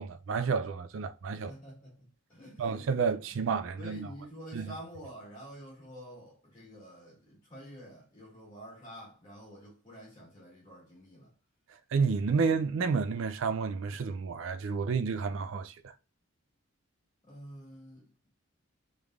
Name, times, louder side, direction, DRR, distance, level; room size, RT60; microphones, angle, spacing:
voice 1, 0.0-1.5 2.6-4.1 4.5-4.7 11.9-15.9, right 5 dB, 65° right, 0.4 m, -30 dB
voice 2, 1.3-3.4 3.8-11.3 17.2-18.3, equal, 20° left, 1.7 m, -49 dB
5.2 x 3.3 x 2.4 m
head